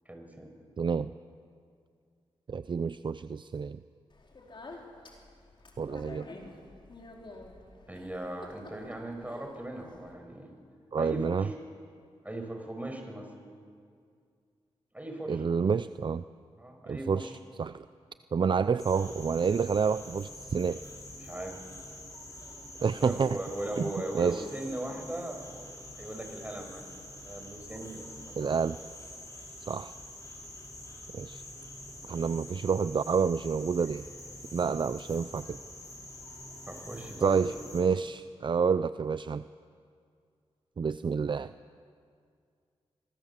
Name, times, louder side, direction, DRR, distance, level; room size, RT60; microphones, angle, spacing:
voice 1, 0.1-0.5 7.9-10.5 10.9-11.5 12.2-13.3 14.9-15.4 16.6-17.4 21.1-21.6 23.0-25.7 26.0-26.8 27.2-28.6 32.0-32.2 36.7-37.7, right 1 dB, 15° right, 3 dB, 6.1 m, -39 dB
voice 2, 0.8-1.1 2.5-3.8 5.8-6.2 10.9-11.5 15.3-16.2 16.9-17.3 17.6-17.8 18.3-20.8 22.8-23.4 23.8-23.9 24.1-24.4 28.4-28.8 29.7-29.9 31.1-31.4 32.1-34.1 34.5-35.6 37.2-39.4 40.8-41.5, right 6 dB, 45° right, 13 dB, 0.5 m, -28 dB
Speech, 4.1-10.1, left 2 dB, 45° left, 4.3 m, -49 dB
sound 1, 18.8-37.8, left 1 dB, 30° left, 6.6 m, -46 dB
26.0 x 23.0 x 7.4 m, 2.2 s
cardioid pair, 60°, 11 cm